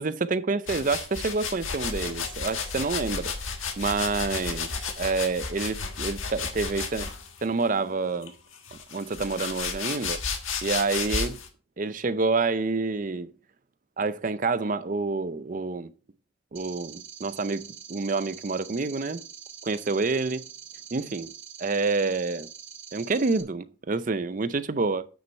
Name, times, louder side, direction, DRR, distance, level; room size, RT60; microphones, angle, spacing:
voice 1, 0.0-3.3 3.8-7.1 7.4-8.3 8.7-10.2 10.6-11.4 11.8-13.3 14.0-15.9 16.5-19.2 19.6-20.5 20.9-21.3 21.6-22.5 22.9-25.1, right 3 dB, 40° right, 0.5 m, -28 dB
sound 1, 0.7-7.5 8.2-11.5, left 5 dB, 75° left, 1.5 m, -33 dB
sound 2, 16.6-23.4, right 9 dB, 70° right, 1.5 m, -44 dB
8.8 x 6.3 x 4.4 m
head